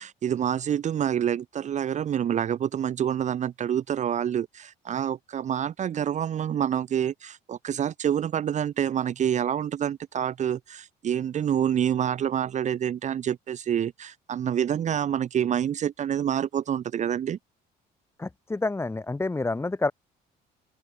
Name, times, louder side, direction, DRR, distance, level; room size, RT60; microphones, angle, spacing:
voice 1, 0.0-17.4, right 9 dB, 45° right, 0.9 m, -27 dB
voice 2, 18.2-19.9, left 3 dB, 15° left, 1.9 m, -28 dB
open air
cardioid pair, 110°, 17 cm